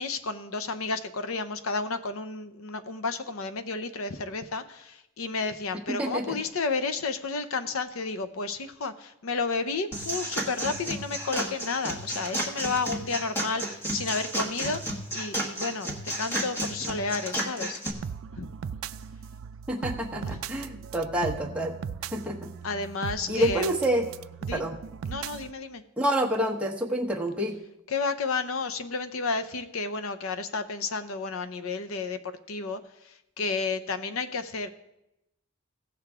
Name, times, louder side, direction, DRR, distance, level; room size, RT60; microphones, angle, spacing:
voice 1, 0.0-17.8 18.4-18.5 20.2-20.4 22.6-23.8 24.5-24.6 25.1-25.8 27.9-34.7, left 4 dB, 80° left, 10 dB, 0.7 m, -32 dB
voice 2, 5.9-6.4 19.7-21.7 22.1-22.5 23.3-24.0 24.5-24.7 26.0-27.6, equal, 5° right, -2 dB, 1.1 m, -28 dB
sound 1, 9.9-17.9, right 1 dB, 10° left, 1.3 m, -32 dB
sound 2, 17.9-25.5, right 7 dB, 75° right, 0.4 m, -38 dB
16.5 x 6.7 x 3.6 m, 0.87 s
head